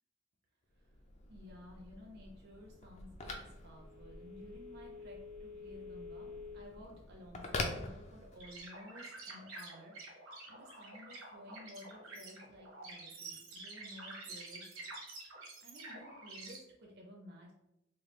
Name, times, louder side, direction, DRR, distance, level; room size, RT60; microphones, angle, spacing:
Telephone, 0.8-8.7, left 3 dB, 30° left, 0.3 m, -45 dB
voice 1, 1.3-14.7 15.6-17.5, left 1 dB, 50° right, -1 dB, 0.4 m, -54 dB
sound 1, 8.4-16.6, right 3 dB, 75° right, 0.8 m, -49 dB
3.3 x 2.2 x 3.1 m, 0.88 s
head